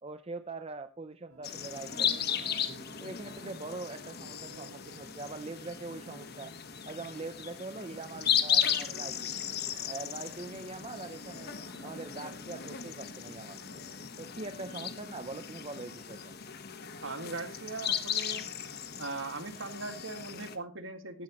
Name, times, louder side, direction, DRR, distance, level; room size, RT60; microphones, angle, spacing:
voice 1, 0.0-2.4 3.0-6.5 6.9-9.5 9.9-13.8 14.2-16.3, right 3 dB, 30° right, 10 dB, 0.6 m, -43 dB
sound 1, 1.3-14.6, right 1 dB, 80° right, 4.3 m, -55 dB
sound 2, 1.4-20.6, left 8 dB, 50° left, 1.3 m, -36 dB
voice 2, 17.0-18.5 19.0-21.2, right 3 dB, 65° right, 7 dB, 1.9 m, -39 dB
15.0 x 13.5 x 3.0 m, 0.30 s
head